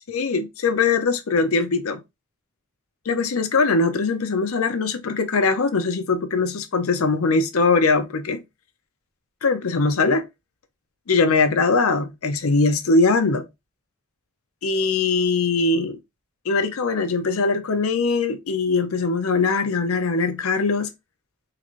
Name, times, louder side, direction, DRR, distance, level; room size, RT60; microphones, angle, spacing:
voice 1, 0.1-2.0 3.1-8.4 9.4-10.2 11.1-13.5 14.6-16.0 16.5-20.9, left 4 dB, 80° left, 0.6 m, -21 dB
3.8 x 2.5 x 3.1 m
head